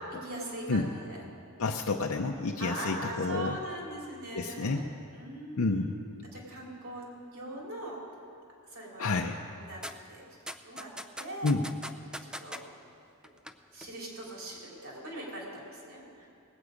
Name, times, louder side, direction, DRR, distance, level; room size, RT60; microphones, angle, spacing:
voice 1, 0.1-1.2 2.6-4.8 5.1-8.0 8.7-9.1 9.6-10.2 10.6-10.9 11.2-11.6 12.2-12.6 13.7-16.3, right 1 dB, 70° right, -3 dB, 3.0 m, -41 dB
voice 2, 1.6-3.6 4.3-4.8 5.6-5.9 9.0-9.4 11.4-11.7, left 3 dB, 75° left, 1 dB, 0.6 m, -29 dB
sound 1, 9.8-9.9 10.5-12.6 13.2-13.5 13.8-13.9, equal, 5° right, 0.4 m, -40 dB
19.0 x 8.3 x 5.0 m, 2.5 s
head